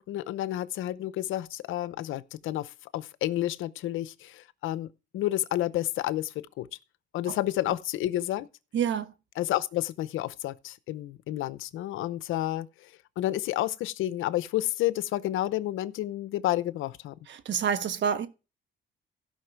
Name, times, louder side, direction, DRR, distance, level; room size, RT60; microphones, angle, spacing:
voice 1, 0.0-4.9 5.1-6.7 7.1-8.5 9.4-12.9 13.2-17.2, left 14 dB, 85° left, 0.8 m, -30 dB
voice 2, 8.7-9.1 17.3-18.3, right 7 dB, 70° right, 1.4 m, -28 dB
16.0 x 5.9 x 4.6 m
cardioid pair, 90°, 20 cm